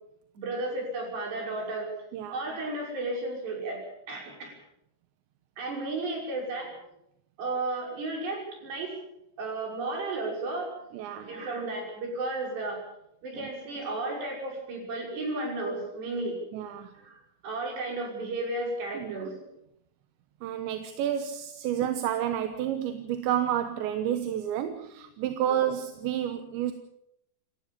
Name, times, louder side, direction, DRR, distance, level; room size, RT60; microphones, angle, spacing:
voice 1, 0.4-1.9 2.3-4.5 5.6-6.8 7.4-9.0 9.4-10.7 11.2-12.8 13.2-16.4 17.0-19.4 25.5-25.6, right 2 dB, 70° right, 0 dB, 7.9 m, -33 dB
voice 2, 10.9-11.3 13.4-13.5 16.5-16.9 19.0-19.3 20.4-26.7, right 10 dB, 90° right, 8 dB, 3.5 m, -30 dB
27.5 x 15.0 x 7.1 m, 0.79 s
omnidirectional pair, 5.0 m